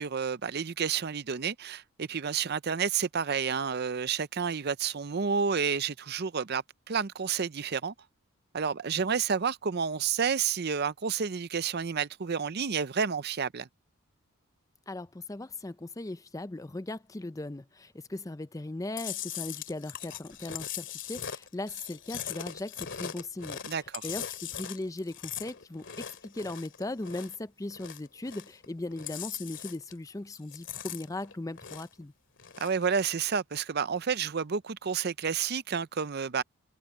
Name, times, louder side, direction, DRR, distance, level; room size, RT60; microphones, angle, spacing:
voice 1, 0.0-7.9 8.5-13.7 23.7-24.1 32.6-36.4, right 6 dB, 45° right, 0.6 m, -30 dB
voice 2, 14.9-23.6 24.0-32.1, left 2 dB, 15° left, 0.5 m, -38 dB
Chewing mastication, 19.0-27.4 27.7-28.7 28.9-30.1 30.3-32.0 32.4-32.8, left 9 dB, 55° left, 2.3 m, -40 dB
head